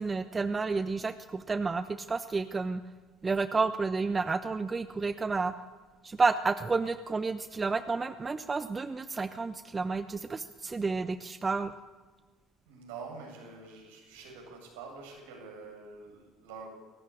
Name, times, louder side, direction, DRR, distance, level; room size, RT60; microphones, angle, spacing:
voice 1, 0.0-2.8 3.2-5.5 6.0-11.7, right 4 dB, 25° right, 12 dB, 0.9 m, -30 dB
voice 2, 12.7-16.7, right 4 dB, 70° right, 2 dB, 7.8 m, -46 dB
23.0 x 18.5 x 8.8 m, 1.4 s
figure-of-eight pair, 60°, 0 cm